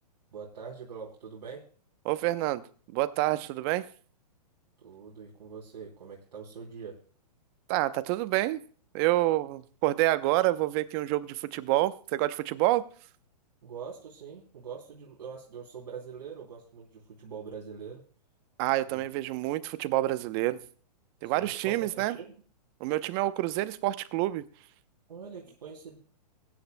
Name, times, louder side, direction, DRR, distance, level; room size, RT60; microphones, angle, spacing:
voice 1, 0.3-1.6 4.8-7.0 13.6-18.0 18.9-19.0 21.2-22.3 25.1-26.0, right 6 dB, 70° right, 3.1 m, -43 dB
voice 2, 2.0-2.6 2.9-3.9 7.7-8.6 8.9-12.8 18.6-20.6 21.2-22.2 22.8-24.4, right 17 dB, 35° right, 0.8 m, -27 dB
21.0 x 10.0 x 2.2 m
hypercardioid pair, 135°, 21 cm